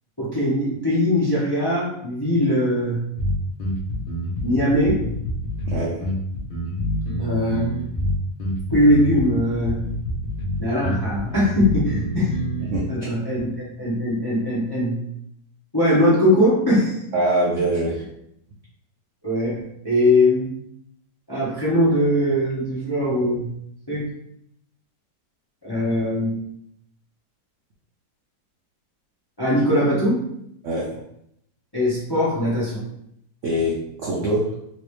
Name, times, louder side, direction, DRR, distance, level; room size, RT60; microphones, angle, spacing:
voice 1, 0.2-3.1 4.4-5.0 7.2-7.7 8.7-9.7 10.6-12.3 12.9-15.0 15.7-17.0 19.2-19.6 19.8-20.5 21.3-23.5 23.9-24.0 25.6-26.3 29.4-30.2 31.7-32.8, left 1 dB, 20° left, -8 dB, 0.6 m, -20 dB
sound 1, 3.2-12.8, equal, 50° left, 1.0 m, -27 dB
voice 2, 5.7-6.1 12.6-12.8 17.1-18.0 30.6-30.9 33.4-34.5, right 1 dB, 70° right, -4 dB, 0.7 m, -23 dB
3.2 x 3.1 x 3.1 m, 0.75 s
omnidirectional pair, 2.0 m